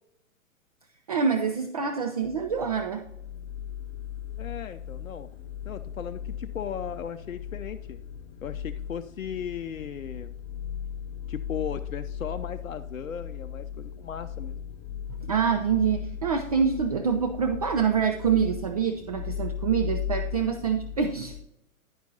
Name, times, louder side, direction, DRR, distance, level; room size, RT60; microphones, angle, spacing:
voice 1, 1.1-3.0 15.3-21.3, right 6 dB, 30° right, 6 dB, 0.4 m, -26 dB
sound 1, 2.2-21.4, left 9 dB, 25° left, 0.6 m, -37 dB
voice 2, 4.4-5.3 5.6-8.0 8.4-10.3 11.3-14.6, left 8 dB, 70° left, 7 dB, 0.6 m, -36 dB
10.0 x 10.0 x 2.7 m, 0.83 s
figure-of-eight pair, 120°, 41 cm